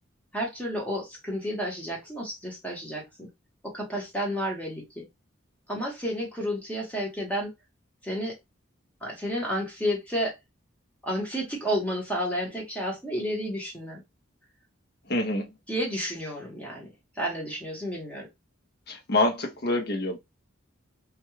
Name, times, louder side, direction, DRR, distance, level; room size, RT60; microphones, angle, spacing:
voice 1, 0.3-3.3 3.6-5.0 5.7-7.5 8.0-8.4 9.0-10.3 11.0-14.0 15.7-16.9 17.1-18.3, equal, 5° left, 0.8 m, -31 dB
voice 2, 15.1-15.5 18.9-20.2, left 2 dB, 50° left, 0.6 m, -26 dB
2.3 x 2.2 x 3.0 m
head